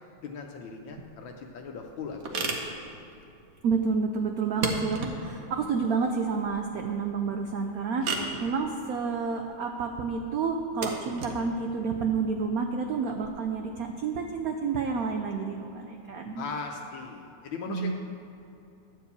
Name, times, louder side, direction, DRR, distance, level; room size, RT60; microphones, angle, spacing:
voice 1, 0.2-2.7 16.3-17.9, left 5 dB, 75° left, 2 dB, 1.4 m, -39 dB
sound 1, 0.9-13.3, right 3 dB, 50° right, 1.2 m, -38 dB
voice 2, 3.6-16.4 17.7-17.9, right 5 dB, 70° right, 4 dB, 0.8 m, -29 dB
12.0 x 4.7 x 8.2 m, 2.7 s
omnidirectional pair, 2.2 m